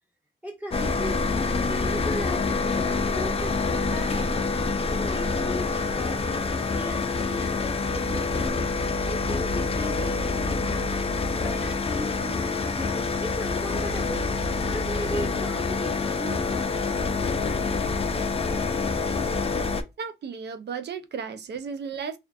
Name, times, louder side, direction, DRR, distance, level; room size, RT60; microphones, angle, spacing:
voice 1, 0.4-1.2 1.7-2.9 3.1-4.3 4.9-6.2 6.7-8.7 9.1-10.9 11.4-14.3 14.7-16.9, equal, 10° right, 1.2 m, -37 dB
Electric machine engine rumble large air-conditioner, 0.7-19.8, left 4 dB, 30° left, 0.4 m, -26 dB
voice 2, 20.0-22.2, right 6 dB, 55° right, 0.4 m, -34 dB
2.5 x 2.3 x 2.2 m
cardioid pair, 60°, 21 cm